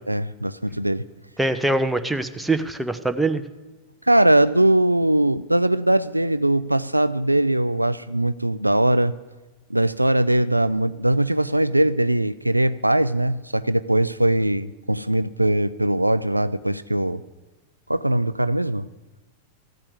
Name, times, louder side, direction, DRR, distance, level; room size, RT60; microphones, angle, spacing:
voice 1, 0.1-1.0 4.1-9.1 9.7-17.2 17.9-18.9, right 1 dB, 85° right, 15 dB, 0.4 m, -21 dB
voice 2, 1.4-3.4, right 2 dB, 5° right, 8 dB, 0.8 m, -23 dB
14.5 x 8.9 x 8.1 m, 1.1 s
figure-of-eight pair, 90°, 0 cm